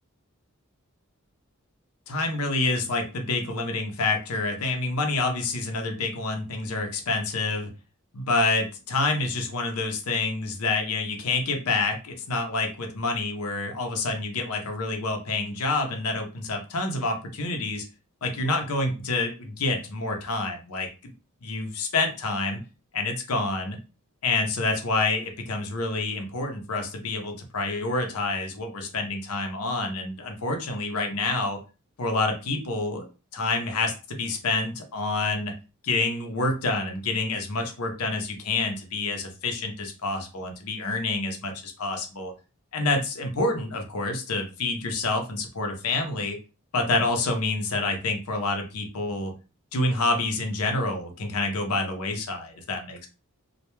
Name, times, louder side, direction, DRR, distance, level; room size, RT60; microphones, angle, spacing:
voice 1, 2.1-7.7 8.1-17.8 18.2-20.9 21.4-22.6 22.9-23.8 24.2-31.6 32.0-33.0 33.3-35.5 35.8-42.3 42.7-46.4 46.7-49.3 49.7-53.1, left 3 dB, 85° left, 4 dB, 0.6 m, -27 dB
2.2 x 2.1 x 2.9 m, 0.32 s
head